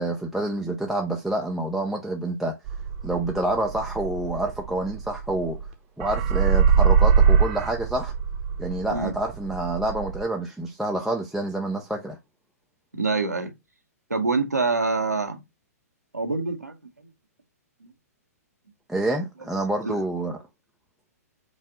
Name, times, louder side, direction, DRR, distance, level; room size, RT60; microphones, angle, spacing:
voice 1, 0.0-2.6 3.0-5.7 6.0-8.1 8.6-12.2 18.9-20.4, right 1 dB, ahead, 0.5 m, -28 dB
sound 1, 2.7-5.7 6.0-10.2, right 6 dB, 35° right, 0.9 m, -22 dB
voice 2, 12.9-13.5 14.1-15.4 16.1-16.8 19.8-19.9, right 3 dB, 85° right, 1.1 m, -25 dB
5.3 x 2.6 x 3.7 m
figure-of-eight pair, 115°, 9 cm